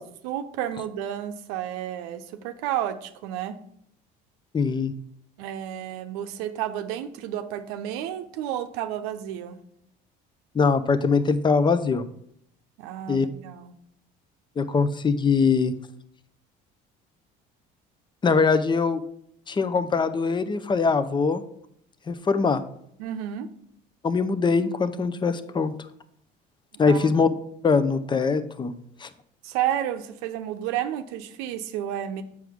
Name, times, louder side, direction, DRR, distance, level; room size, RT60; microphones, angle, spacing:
voice 1, 0.2-3.6 5.4-9.6 12.8-13.7 23.0-23.5 26.8-27.2 29.4-32.2, right 11 dB, 85° right, 8 dB, 0.7 m, -31 dB
voice 2, 4.5-4.9 10.5-12.0 13.1-13.3 14.6-15.7 18.2-19.0 19.5-21.4 22.1-22.6 24.0-25.7 26.8-27.3 27.6-28.7 29.0-29.1, left 4 dB, 20° left, 12 dB, 0.6 m, -22 dB
7.6 x 6.1 x 3.6 m, 0.70 s
supercardioid pair, 95°, 21 cm